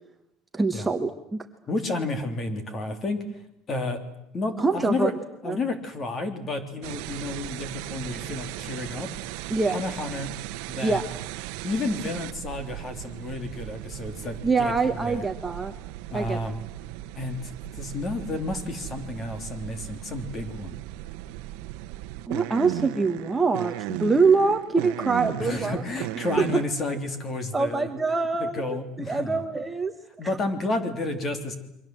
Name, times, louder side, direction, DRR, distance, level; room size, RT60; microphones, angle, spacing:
voice 1, 0.5-1.4 4.6-5.1 5.4-5.6 9.5-9.8 10.8-11.0 14.4-15.7 16.1-16.4 22.3-25.8 26.4-26.5 27.5-28.6 29.0-29.9, right 4 dB, 10° right, 5 dB, 1.3 m, -24 dB
voice 2, 1.7-3.2 3.7-4.0 4.3-5.1 5.4-9.1 9.4-10.3 10.7-11.1 11.6-15.2 16.1-16.6 17.2-20.8 25.3-27.9 28.4-29.4 30.2-31.6, left 2 dB, 30° left, 8 dB, 3.3 m, -31 dB
sound 1, 6.8-26.6, right 17 dB, 80° right, 1.0 m, -37 dB
28.5 x 24.0 x 7.8 m, 0.81 s
cardioid pair, 150°, 0 cm